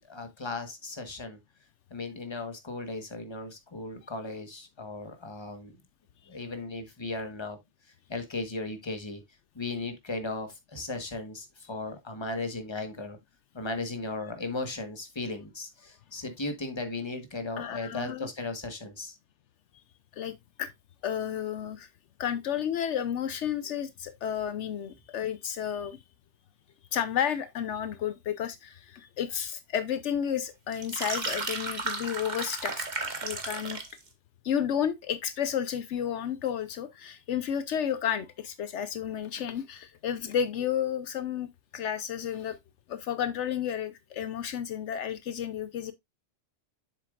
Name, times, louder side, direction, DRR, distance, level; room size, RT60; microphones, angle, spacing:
voice 1, 0.1-1.4 1.9-5.7 6.3-7.6 8.1-9.2 9.5-13.2 13.5-19.2, left 2 dB, 25° left, 1.3 m, -36 dB
voice 2, 17.6-18.3 20.1-20.7 21.0-21.9 22.2-26.0 26.9-32.9 33.2-33.8 34.4-41.5 41.7-42.6 42.9-45.9, left 9 dB, 75° left, 0.9 m, -32 dB
sound 1, 30.7-34.0, right 3 dB, 40° right, 1.4 m, -34 dB
7.5 x 6.8 x 2.4 m
omnidirectional pair, 1.2 m